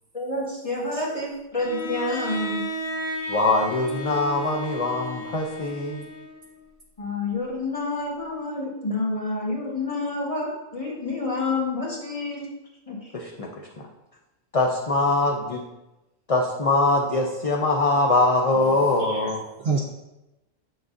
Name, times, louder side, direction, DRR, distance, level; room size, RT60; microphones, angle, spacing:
voice 1, 0.1-2.6 7.0-12.5 12.9-13.0, left 2 dB, 25° left, -4 dB, 1.5 m, -28 dB
Bowed string instrument, 1.6-6.6, equal, 80° left, 1.2 m, -34 dB
voice 2, 3.3-6.1 13.1-13.5 14.5-15.6 16.3-19.4, left 2 dB, 45° left, -1 dB, 0.5 m, -22 dB
voice 3, 18.5-19.8, right 4 dB, 60° right, 0 dB, 0.6 m, -30 dB
6.9 x 6.0 x 2.6 m, 0.95 s
omnidirectional pair, 1.4 m